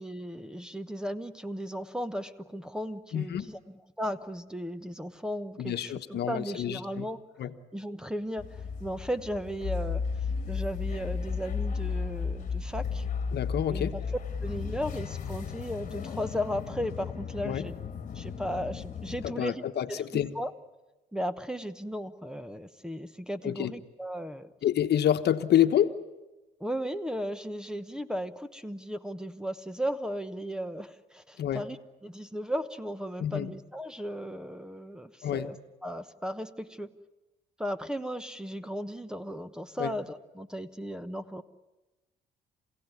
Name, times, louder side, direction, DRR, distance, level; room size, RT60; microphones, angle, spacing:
voice 1, 0.0-3.6 4.0-7.2 7.7-8.5 8.8-10.0 10.5-13.1 13.7-14.0 14.4-17.7 18.1-20.5 21.1-24.5 26.6-31.8 32.0-35.6 35.8-36.9 37.6-41.4, equal, 5° right, 13 dB, 1.1 m, -36 dB
voice 2, 3.1-3.5 5.6-7.1 7.4-7.5 13.3-13.9 17.4-17.7 19.2-20.3 23.4-23.7 24.6-25.9 31.4-31.6 33.2-33.5 35.2-35.5 39.8-39.9, left 10 dB, 60° left, 8 dB, 1.3 m, -28 dB
sound 1, 8.4-19.3, left 5 dB, 40° left, 1.8 m, -34 dB
28.0 x 17.0 x 9.7 m, 1.1 s
cardioid pair, 100°, 19 cm